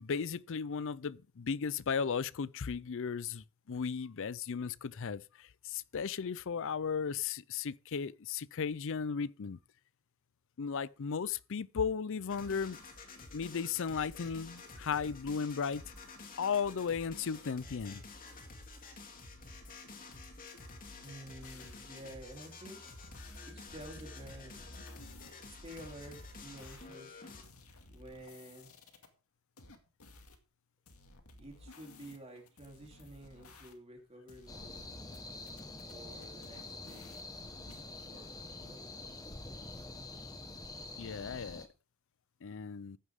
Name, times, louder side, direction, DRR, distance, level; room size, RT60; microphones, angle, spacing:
voice 1, 0.0-9.6 10.6-12.8 13.3-15.8 16.4-18.0 41.0-41.6 42.4-43.0, left 6 dB, 60° left, 0.5 m, -35 dB
sound 1, 12.3-27.4, left 3 dB, 40° left, 2.7 m, -50 dB
sound 2, 20.8-21.8 23.0-25.3 25.7-29.1 29.6-30.4 30.9-34.0 34.3-35.2 35.5-37.8, left 2 dB, 80° left, 2.2 m, -56 dB
voice 2, 21.0-22.9 23.5-24.6 25.4-27.2 27.9-28.7 31.4-34.8 35.9-38.9, right 1 dB, 30° right, 3.3 m, -51 dB
sound 3, 34.5-41.7, left 2 dB, 15° left, 1.3 m, -46 dB
14.5 x 9.8 x 3.6 m
head